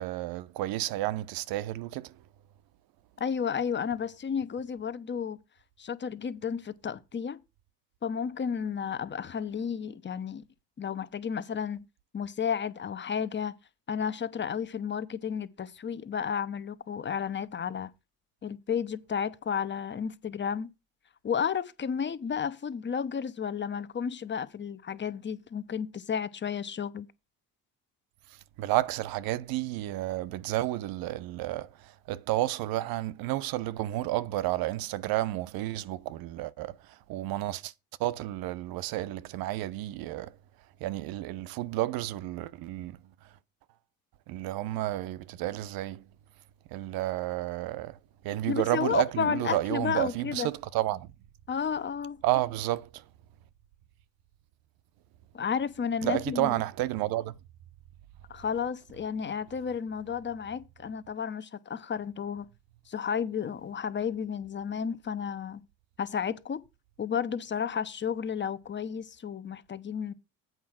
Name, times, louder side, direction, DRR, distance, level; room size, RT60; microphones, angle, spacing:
voice 1, 0.0-2.1 28.6-36.8 37.1-37.7 38.0-40.3 40.8-43.0 44.3-46.0 46.7-48.0 48.2-51.1 52.2-53.0 56.0-57.3, right 15 dB, 70° right, 0.8 m, -31 dB
voice 2, 3.2-5.4 5.8-7.4 8.0-10.4 10.8-11.8 12.1-13.5 13.9-17.9 18.4-20.7 21.2-27.1 48.5-50.5 51.5-52.2 55.3-56.5 58.3-62.5 62.9-65.6 66.0-66.6 67.0-70.1, left 7 dB, 30° left, 0.9 m, -32 dB
8.2 x 4.7 x 7.3 m
supercardioid pair, 95°, 37 cm